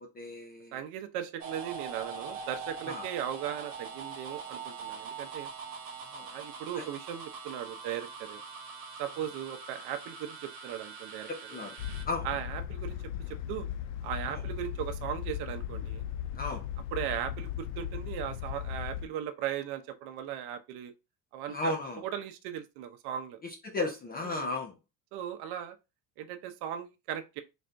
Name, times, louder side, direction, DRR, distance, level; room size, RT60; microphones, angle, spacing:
voice 1, 0.1-0.8 2.9-3.0 6.1-6.3 6.7-6.9 11.3-11.8 12.1-12.3 14.3-14.4 16.3-16.7 21.5-22.0 23.4-24.7, left 2 dB, 20° left, 0.6 m, -35 dB
voice 2, 0.7-5.5 6.3-8.4 9.0-11.6 12.2-13.0 13.3-13.7 14.0-16.0 16.9-20.9 21.3-23.4 24.2-24.5 25.1-25.8 26.2-27.4, right 10 dB, 60° right, 0.8 m, -38 dB
sound 1, 1.4-12.0, right 5 dB, 40° right, 1.4 m, -43 dB
sound 2, 11.8-19.1, left 10 dB, 75° left, 0.5 m, -37 dB
4.2 x 2.5 x 3.3 m
cardioid pair, 150°, 43 cm